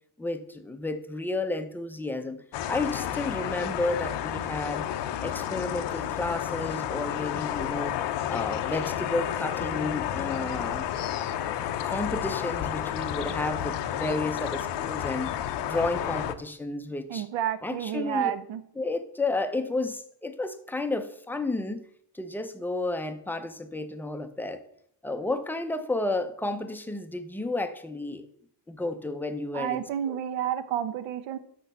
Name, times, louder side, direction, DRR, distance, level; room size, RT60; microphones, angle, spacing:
voice 1, 0.2-4.9 5.2-8.0 8.3-10.9 11.8-15.4 15.6-17.2 17.6-18.3 18.8-21.9 22.1-24.6 25.0-28.2 28.7-29.8 30.1-30.2, left 2 dB, 5° left, 8 dB, 0.4 m, -32 dB
sound 1, 2.5-16.3, left 10 dB, 70° left, 0.7 m, -31 dB
voice 2, 17.1-18.6 29.5-31.4, right 10 dB, 80° right, 11 dB, 0.9 m, -30 dB
6.2 x 6.2 x 6.6 m, 0.70 s
cardioid pair, 155°, 44 cm